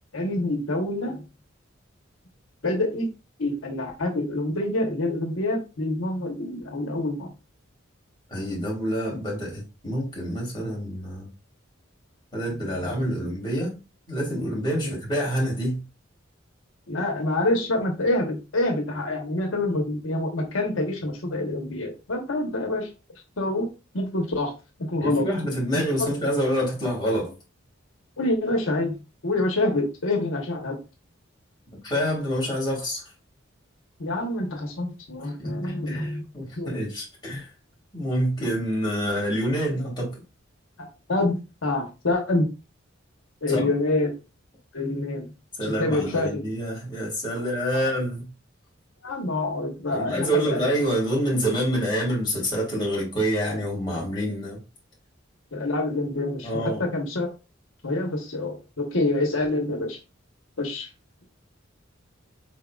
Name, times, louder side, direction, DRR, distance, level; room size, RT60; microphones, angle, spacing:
voice 1, 0.1-1.2 2.6-3.1 3.4-7.3 12.8-13.2 14.8-14.9 16.9-22.9 23.4-23.7 23.9-24.5 24.9-25.3 25.7-26.1 28.2-30.8 34.0-36.2 36.6-36.7 41.1-42.5 43.4-44.2 44.7-45.3 45.6-46.4 49.0-50.7 55.5-57.3 57.8-60.0 60.6-60.9, left 2 dB, 90° left, 1.0 m, -26 dB
voice 2, 8.3-11.3 12.3-13.8 14.1-15.8 25.0-27.3 31.8-33.0 35.4-37.5 37.9-40.2 43.5-43.7 45.6-48.3 49.9-54.6 56.4-56.8, equal, 20° left, 2.0 m, -27 dB
4.5 x 3.6 x 2.3 m
head